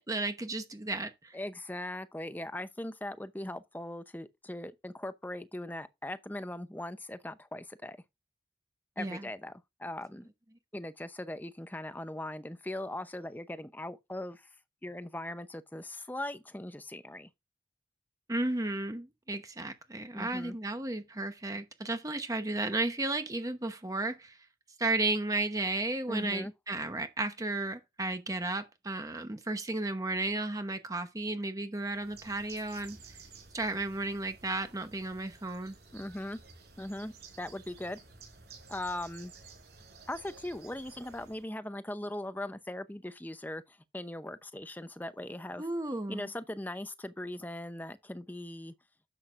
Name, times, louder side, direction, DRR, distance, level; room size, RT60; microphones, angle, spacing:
voice 1, 0.0-1.4 9.0-9.3 18.3-24.4 24.8-33.0 33.5-35.7 45.6-46.3, right 2 dB, 20° right, 0.9 m, -33 dB
voice 2, 1.3-8.0 9.0-10.3 10.7-14.5 14.8-17.3 20.1-20.6 26.1-26.5 35.9-36.4 36.8-38.0 38.7-39.3 40.1-45.7 46.1-48.7, left 1 dB, 10° left, 0.7 m, -40 dB
Bird, 31.8-41.5, right 4 dB, 70° right, 4.9 m, -54 dB
11.0 x 7.9 x 2.5 m
head